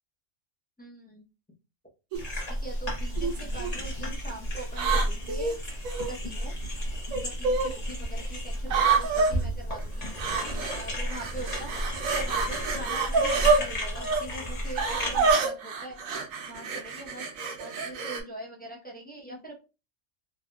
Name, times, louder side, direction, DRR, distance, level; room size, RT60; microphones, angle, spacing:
voice 1, 0.8-1.2 2.6-5.8 6.1-6.5 7.2-10.1 10.7-11.8 12.1-17.3 17.6-19.6, right 1 dB, 10° left, -2 dB, 0.5 m, -43 dB
sound 1, 2.1-15.3, equal, 30° left, 1.0 m, -33 dB
sound 2, 2.1-2.4 3.2-3.7 4.7-6.1 7.1-7.7 8.7-9.3 10.2-10.8 11.1-13.6 14.0-14.2 14.8-18.2, right 4 dB, 80° right, 1.1 m, -27 dB
3.5 x 2.6 x 2.3 m, 0.30 s
omnidirectional pair, 1.4 m